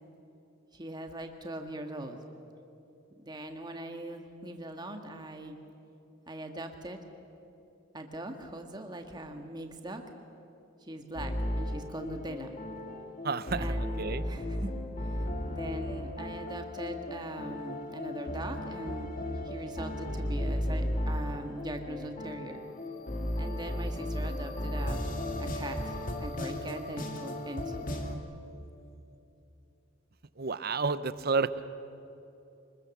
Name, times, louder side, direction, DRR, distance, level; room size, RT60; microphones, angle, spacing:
voice 1, 0.7-2.2 3.2-5.6 6.3-7.0 7.9-10.0 10.8-12.5 13.6-14.7 15.1-22.6 23.4-25.1 25.4-27.9, right 1 dB, 20° right, 4 dB, 1.7 m, -41 dB
sound 1, 11.1-28.2, left 1 dB, 40° left, 2.1 m, -35 dB
voice 2, 13.2-14.2 30.4-31.7, right 4 dB, 50° right, 14 dB, 0.7 m, -31 dB
24.5 x 21.0 x 7.2 m, 2.9 s
head